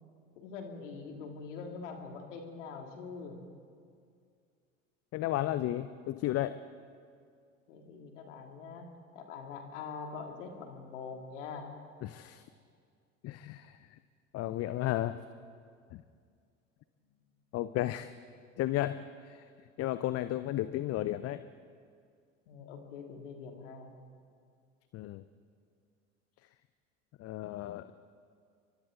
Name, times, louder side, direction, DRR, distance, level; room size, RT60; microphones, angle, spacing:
voice 1, 0.4-3.4 7.7-8.9 9.1-11.7 22.5-23.9, left 5 dB, 70° left, 3 dB, 2.9 m, -44 dB
voice 2, 5.1-6.6 12.0-12.4 13.2-14.0 14.3-15.2 15.9-16.0 17.5-18.1 18.6-19.4 19.8-21.5 24.9-25.2 27.2-28.0, left 14 dB, 40° left, 13 dB, 0.7 m, -33 dB
30.0 x 24.5 x 3.9 m, 2.2 s
figure-of-eight pair, 70°, 38 cm